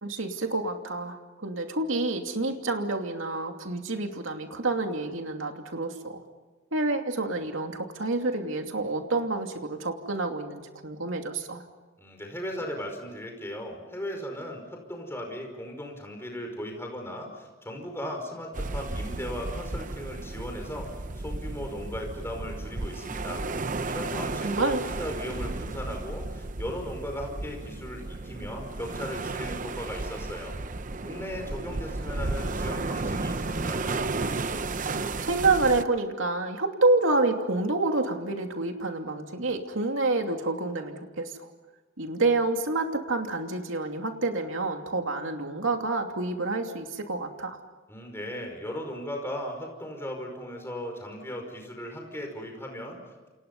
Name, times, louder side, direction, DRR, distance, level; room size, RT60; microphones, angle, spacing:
voice 1, 0.0-6.2 6.7-11.6 24.4-24.8 34.9-41.3 42.0-47.6, right 2 dB, 70° right, 4 dB, 2.8 m, -28 dB
voice 2, 12.0-20.9 21.1-30.6 31.0-34.1 47.9-53.3, equal, 10° left, 2 dB, 5.2 m, -37 dB
sound 1, 18.5-35.8, right 3 dB, 40° right, 0.8 m, -33 dB
28.5 x 28.5 x 5.5 m, 1.2 s
head